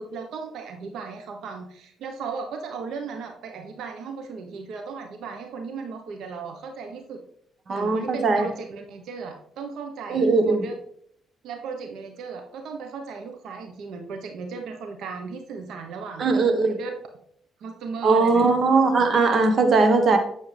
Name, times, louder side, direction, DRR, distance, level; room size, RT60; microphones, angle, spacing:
voice 1, 0.0-7.2 7.7-10.7 11.4-16.3 16.6-16.9 17.6-18.5, right 5 dB, 80° right, 4 dB, 1.2 m, -36 dB
voice 2, 7.7-8.5 10.1-10.7 16.2-16.8 18.0-20.2, right 3 dB, 50° right, 6 dB, 1.4 m, -19 dB
9.5 x 7.0 x 3.5 m, 0.65 s
cardioid pair, 90°, 0 cm